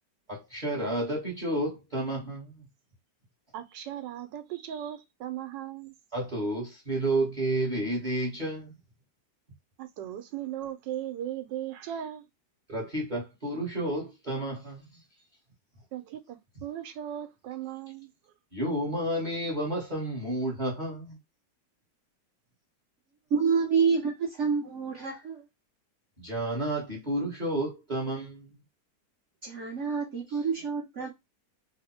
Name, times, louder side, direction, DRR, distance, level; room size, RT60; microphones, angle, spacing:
voice 1, 0.3-2.6 6.1-8.7 12.7-15.0 18.5-21.2 26.2-28.5, right 1 dB, 35° right, 0.9 m, -31 dB
voice 2, 3.5-5.9 9.8-12.2 15.9-18.1, right 11 dB, 85° right, 1.3 m, -37 dB
voice 3, 23.3-25.5 29.4-31.1, right 5 dB, 60° right, 0.8 m, -28 dB
3.0 x 2.1 x 4.1 m
omnidirectional pair, 1.9 m